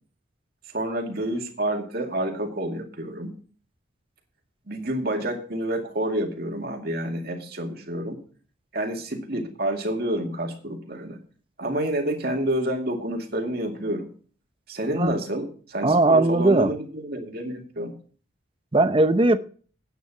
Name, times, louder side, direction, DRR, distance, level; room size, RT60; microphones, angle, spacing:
voice 1, 0.7-3.3 4.7-8.2 8.7-11.2 11.6-14.1 14.7-17.9, right 1 dB, 50° right, 2.2 m, -28 dB
voice 2, 15.8-16.7 18.7-19.4, right 2 dB, 25° right, 0.6 m, -19 dB
9.6 x 9.2 x 6.0 m
head